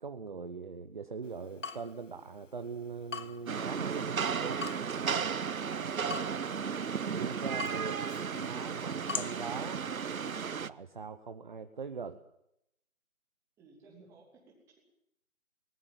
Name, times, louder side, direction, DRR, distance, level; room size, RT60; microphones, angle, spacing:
voice 1, 0.0-4.6 5.0-5.4 5.7-6.4 7.1-8.0 8.4-9.8 10.7-12.2, right 5 dB, 35° right, 9 dB, 1.0 m, -41 dB
Water tap faucet / Drip, 1.2-10.5, left 5 dB, 60° left, 1.2 m, -46 dB
Rain, 3.5-10.7, right 6 dB, 75° right, 0.9 m, -34 dB
voice 2, 13.6-14.8, right 3 dB, 5° right, -1 dB, 2.9 m, -59 dB
21.0 x 19.5 x 7.4 m, 0.78 s
figure-of-eight pair, 165°, 42 cm